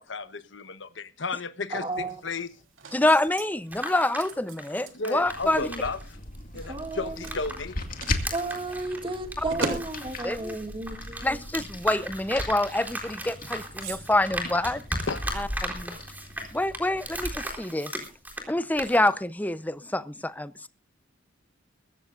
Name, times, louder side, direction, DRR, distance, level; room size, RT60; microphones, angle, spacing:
voice 1, 0.0-2.5 4.9-6.0 6.5-7.8 8.2-8.6 15.1-15.2, left 3 dB, 65° left, 1.1 m, -33 dB
voice 2, 1.7-2.1 6.7-7.1 8.3-11.4, right 2 dB, 25° right, 2.2 m, -33 dB
sound 1, 1.9-15.7, right 3 dB, 90° right, 3.2 m, -43 dB
voice 3, 2.9-5.7 9.4-9.8 10.2-10.6 11.2-14.8 15.3-16.0 16.5-17.9 18.5-20.7, left 1 dB, 10° left, 0.7 m, -27 dB
sound 2, 3.5-7.6 7.9-18.5 18.8-19.1, equal, 10° right, 3.9 m, -36 dB
sound 3, 5.3-17.4, left 2 dB, 45° left, 2.2 m, -39 dB
23.0 x 14.0 x 2.6 m
head